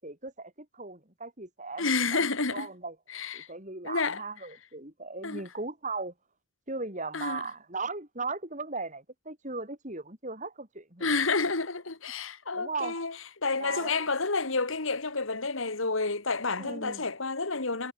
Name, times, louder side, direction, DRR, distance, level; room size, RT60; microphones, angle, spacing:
voice 1, 0.0-2.3 2.5-3.0 3.3-6.1 6.7-11.1 12.5-13.1 13.6-14.0 16.6-17.0, right 3 dB, 35° right, 5.7 m, -37 dB
voice 2, 1.8-2.7 3.1-3.5 3.8-4.2 5.2-5.4 7.1-7.4 11.0-13.1 13.4-17.9, left 4 dB, 65° left, 2.2 m, -29 dB
head